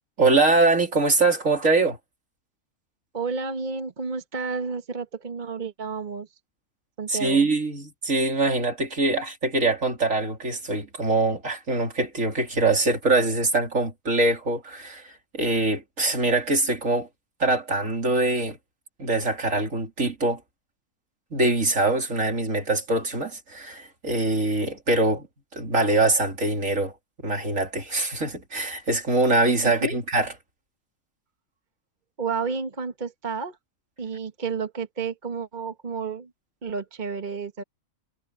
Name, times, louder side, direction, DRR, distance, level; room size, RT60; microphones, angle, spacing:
voice 1, 0.2-2.0 7.1-17.1 17.4-18.6 19.0-20.4 21.3-25.3 25.5-26.9 27.2-30.3, right 2 dB, 60° right, 3.8 m, -23 dB
voice 2, 3.1-6.3 7.0-7.5 29.6-30.0 32.2-33.6 34.0-36.3 36.6-37.6, right 5 dB, 35° right, 1.5 m, -31 dB
omnidirectional pair, 1.5 m